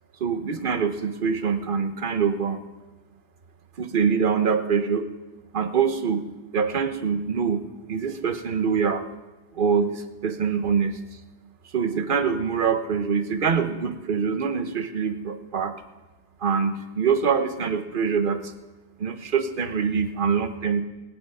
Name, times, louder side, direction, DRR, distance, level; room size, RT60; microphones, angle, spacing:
voice 1, 0.2-2.6 3.8-5.1 5.5-6.2 6.5-7.6 7.9-9.0 9.5-11.0 11.7-15.7 16.4-18.5 19.0-20.8, right 6 dB, 50° right, 9 dB, 1.0 m, -24 dB
20.0 x 8.9 x 5.5 m, 1.2 s
omnidirectional pair, 1.2 m